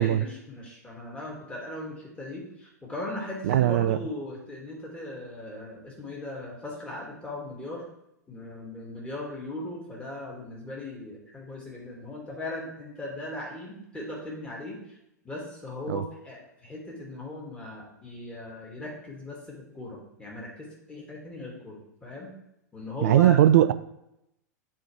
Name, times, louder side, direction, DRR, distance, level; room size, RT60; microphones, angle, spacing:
voice 1, 0.0-7.8 8.3-15.0 15.2-22.3 22.7-23.4, left 1 dB, 10° left, -3 dB, 2.3 m, -38 dB
voice 2, 3.4-4.0 15.9-16.0 23.0-23.7, right 12 dB, 55° right, 13 dB, 0.4 m, -20 dB
9.6 x 4.5 x 3.3 m, 0.83 s
figure-of-eight pair, 95°, 10 cm